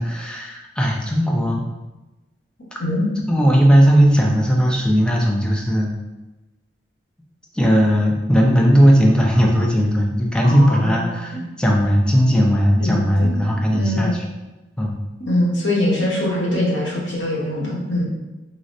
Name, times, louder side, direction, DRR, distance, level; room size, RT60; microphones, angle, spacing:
voice 1, 0.0-1.6 3.3-5.9 7.5-14.2 14.8-14.9, equal, 5° left, -1 dB, 0.4 m, -17 dB
voice 2, 10.4-11.5 12.4-12.5 12.8-13.3 13.7-14.1 15.2-18.1, left 1 dB, 90° left, -4 dB, 1.0 m, -23 dB
4.1 x 2.1 x 2.5 m, 1.1 s
head